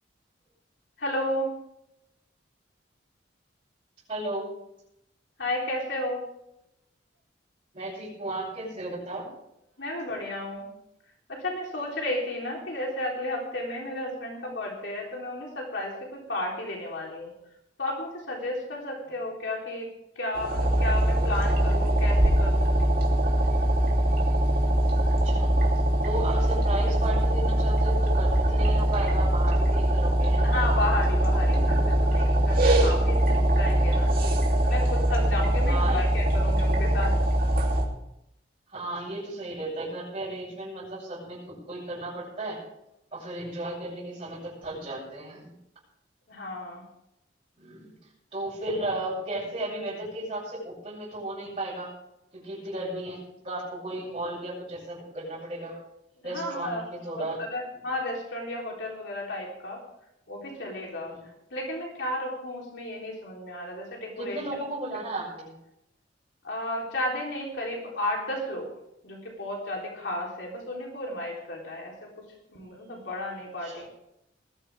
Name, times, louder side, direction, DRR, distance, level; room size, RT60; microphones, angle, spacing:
voice 1, 1.0-1.5 5.4-6.2 9.8-10.7 11.3-17.3 17.8-19.9 20.2-22.8 30.4-34.4 34.7-37.1 46.3-46.8 56.3-59.8 60.3-61.1 61.5-64.4 66.4-68.7 69.0-71.9 72.5-73.9, left 1 dB, 70° left, -1 dB, 3.6 m, -33 dB
voice 2, 4.1-4.5 7.7-9.3 25.2-25.5 26.0-30.5 35.6-36.0 38.7-41.4 41.7-42.6 43.1-45.5 47.6-47.9 48.3-51.9 52.3-55.8 56.2-57.4 61.0-61.3 64.2-65.6 73.6-73.9, right 1 dB, 30° right, -9 dB, 7.2 m, -34 dB
sound 1, 20.3-37.8, right 1 dB, 55° right, 3.0 m, -22 dB
20.0 x 13.5 x 3.6 m, 0.82 s
head